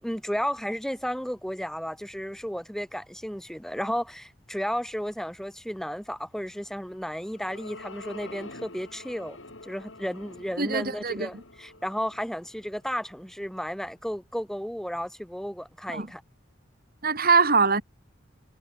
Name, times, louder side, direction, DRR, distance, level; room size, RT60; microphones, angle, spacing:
voice 1, 0.0-9.4 9.6-16.2, equal, ahead, 4.9 m, -33 dB
sound 1, 6.8-13.3, left 2 dB, 85° left, 7.6 m, -47 dB
voice 2, 10.6-11.4 15.9-16.1 17.0-17.8, right 4 dB, 50° right, 4.2 m, -23 dB
head